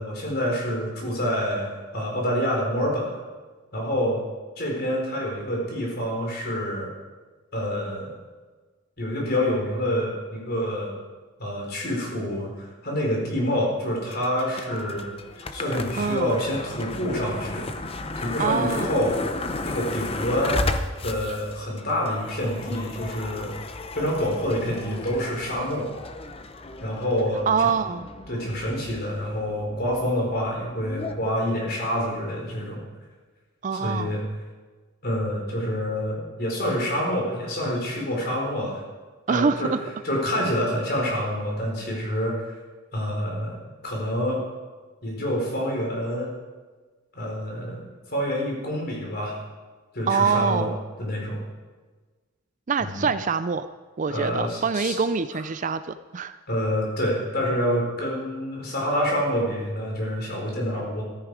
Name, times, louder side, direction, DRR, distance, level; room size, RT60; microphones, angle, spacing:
voice 1, 0.0-3.2 3.7-4.2 4.6-6.9 7.5-8.1 9.0-11.0 11.4-15.1 15.4-17.7 18.2-19.2 19.6-20.6 21.0-23.5 23.9-25.9 26.8-27.7 28.3-32.8 33.7-34.2 35.0-38.8 39.3-39.7 40.0-42.4 42.9-44.4 45.0-46.3 47.1-47.8 48.1-49.4 49.9-50.7 51.0-51.4 52.8-53.0 54.0-55.0 55.3-55.4 56.5-61.0, equal, 45° left, -1 dB, 4.4 m, -27 dB
sound 1, 14.1-31.1, left 2 dB, 25° left, 0.7 m, -34 dB
voice 2, 16.0-16.3 18.4-18.9 27.5-28.1 33.6-34.2 39.3-39.8 50.1-50.8 52.7-53.7 54.0-56.4, right 5 dB, 35° right, 12 dB, 0.4 m, -25 dB
14.0 x 13.5 x 4.8 m, 1.4 s
head